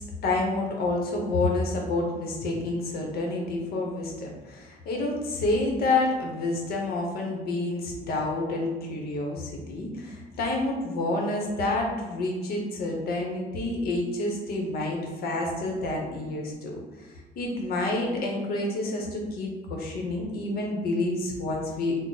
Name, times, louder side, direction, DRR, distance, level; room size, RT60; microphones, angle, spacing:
voice 1, 0.0-22.0, left 2 dB, 65° left, 0 dB, 0.9 m, -29 dB
3.6 x 2.1 x 3.9 m, 1.2 s
cardioid pair, 110°, 17 cm